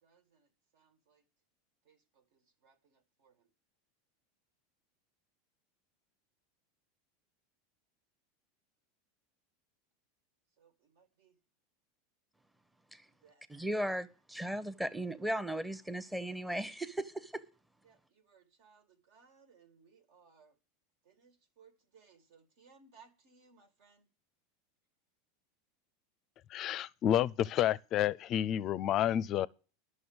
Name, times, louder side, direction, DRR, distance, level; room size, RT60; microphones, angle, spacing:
voice 1, 0.0-1.2 1.8-3.5 10.6-11.4 13.1-13.5 17.8-20.6 21.0-24.1, right 5 dB, 65° right, 2.0 m, -65 dB
voice 2, 13.5-17.4, right 1 dB, 5° right, 0.8 m, -36 dB
voice 3, 26.5-29.5, left 11 dB, 45° left, 0.4 m, -30 dB
11.0 x 6.4 x 7.9 m
hypercardioid pair, 105°, 0 cm